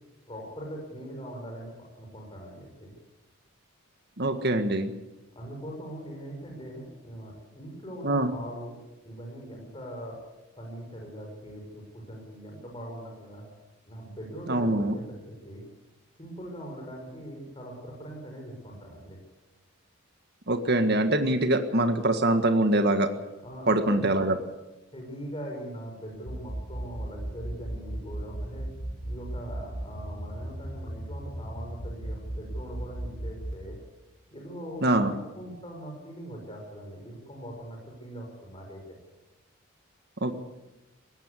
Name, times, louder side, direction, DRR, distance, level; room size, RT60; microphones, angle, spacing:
voice 1, 0.3-2.9 5.3-8.7 9.0-10.2 10.6-13.5 13.9-15.6 16.2-19.2 23.4-24.1 24.9-28.7 29.0-33.8 34.3-38.8, equal, 25° left, 0 dB, 5.6 m, -41 dB
voice 2, 4.2-4.9 8.0-8.3 14.5-15.0 20.5-23.1 23.7-24.4 34.8-35.1 40.2-40.4, right 1 dB, 50° right, 7 dB, 1.7 m, -24 dB
sound 1, 26.3-33.5, right 1 dB, 75° left, 5.4 m, -35 dB
20.0 x 17.0 x 8.4 m, 1.0 s
head